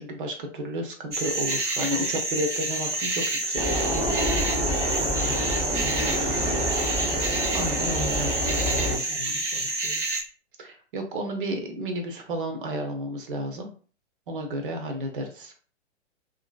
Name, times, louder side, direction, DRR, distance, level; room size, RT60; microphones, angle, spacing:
voice 1, 0.0-3.9 7.5-8.3 10.6-13.7 14.3-15.5, right 1 dB, 45° right, 4 dB, 0.7 m, -32 dB
sound 1, 1.1-10.2, right 2 dB, 80° right, 0.8 m, -28 dB
sound 2, 3.6-9.0, equal, 5° right, 0.6 m, -28 dB
voice 2, 5.1-6.7 7.6-10.0, left 6 dB, 40° left, 2 dB, 0.7 m, -42 dB
2.7 x 2.6 x 2.4 m, 0.40 s
figure-of-eight pair, 110°, 36 cm